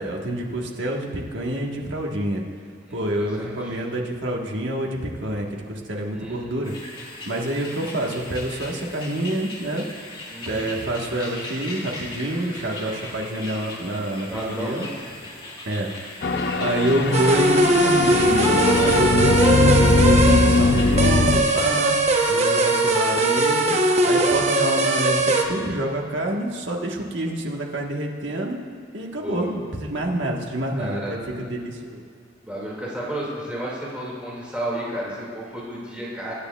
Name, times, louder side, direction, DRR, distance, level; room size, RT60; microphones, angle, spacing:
voice 1, 0.0-2.4 2.9-6.7 7.2-9.9 10.4-14.9 15.7-15.9 16.6-22.0 22.3-23.7 24.0-28.6 28.9-32.0, right 1 dB, 70° right, 0 dB, 1.5 m, -27 dB
voice 2, 2.8-3.8 6.2-6.5 10.3-10.7 14.3-15.1 24.1-24.3 29.2-29.5 30.8-31.2 32.4-36.3, right 1 dB, 5° right, -6 dB, 2.3 m, -32 dB
sound 1, 6.6-21.6, left 2 dB, 25° left, 2.0 m, -38 dB
sound 2, 16.2-21.4, left 3 dB, 60° left, 0.6 m, -20 dB
sound 3, 17.1-25.4, right 2 dB, 35° right, 0.9 m, -20 dB
24.0 x 9.8 x 2.4 m, 2.2 s
head